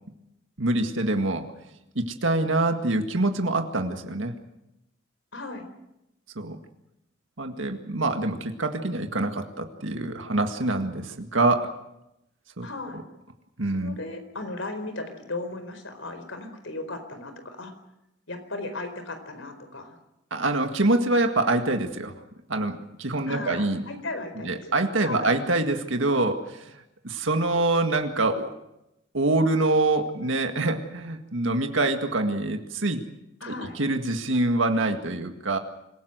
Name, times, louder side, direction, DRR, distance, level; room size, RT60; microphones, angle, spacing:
voice 1, 0.6-1.5 2.0-4.4 6.4-6.6 7.4-11.7 12.6-12.7 12.9-13.0 13.6-14.0 20.3-22.1 22.5-23.8 24.4-28.5 29.1-33.0 33.5-35.6, right 2 dB, 85° right, 6 dB, 1.9 m, -25 dB
voice 2, 5.3-5.7 12.6-13.0 13.7-17.7 18.3-20.0 23.3-25.3 33.4-33.7, left 2 dB, 90° left, 8 dB, 4.5 m, -36 dB
26.0 x 17.5 x 8.0 m, 0.87 s
head